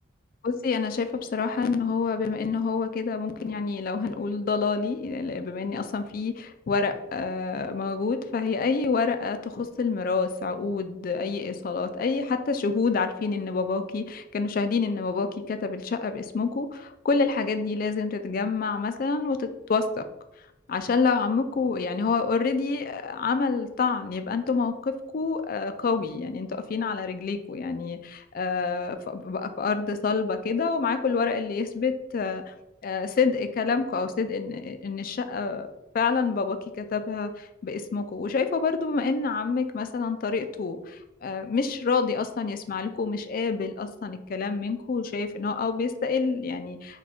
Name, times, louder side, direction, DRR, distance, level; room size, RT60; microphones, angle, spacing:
voice 1, 0.4-20.0 20.7-32.5 32.8-35.7 35.9-47.0, left 4 dB, 45° left, 9 dB, 0.3 m, -27 dB
4.1 x 2.3 x 4.3 m, 0.91 s
head